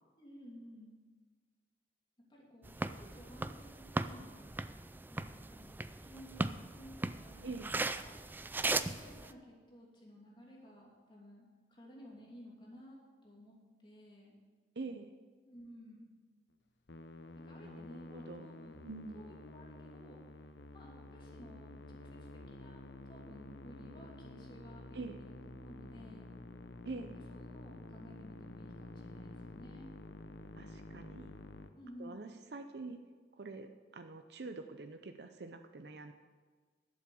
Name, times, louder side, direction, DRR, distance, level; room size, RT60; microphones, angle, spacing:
voice 1, 0.2-1.0 2.3-4.5 5.1-5.8 6.0-8.1 8.7-13.6 13.8-14.3 15.4-16.1 17.4-20.2 20.7-22.8 23.1-25.3 25.6-26.3 27.3-29.9 31.7-32.3, equal, 30° left, -3 dB, 2.8 m, -55 dB
sound 1, 2.6-9.3, right 2 dB, 10° right, 0.3 m, -38 dB
voice 2, 14.8-15.1 17.6-18.5 18.9-19.2 24.9-25.2 26.8-27.2 30.6-31.4 32.0-33.0 33.3-36.1, right 3 dB, 65° right, 7 dB, 0.6 m, -45 dB
Musical instrument, 16.9-31.7, left 2 dB, 80° left, 0.8 m, -50 dB
12.0 x 7.7 x 6.9 m, 1.5 s
head